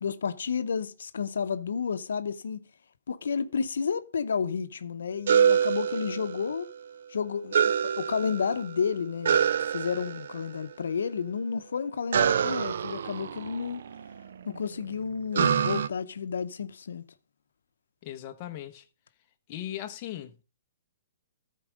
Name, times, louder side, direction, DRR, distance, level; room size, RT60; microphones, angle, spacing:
voice 1, 0.0-2.6 3.1-6.7 7.1-7.6 8.0-9.4 9.7-13.8 14.5-17.0, left 6 dB, 85° left, 0.7 m, -31 dB
sound 1, 5.3-6.7 7.5-8.7 9.2-10.5 12.1-14.2 15.3-15.9, right 7 dB, 70° right, 0.5 m, -26 dB
voice 2, 18.0-18.8 19.5-20.4, left 12 dB, 30° left, 0.9 m, -38 dB
13.5 x 4.6 x 5.0 m
hypercardioid pair, 155°, 0 cm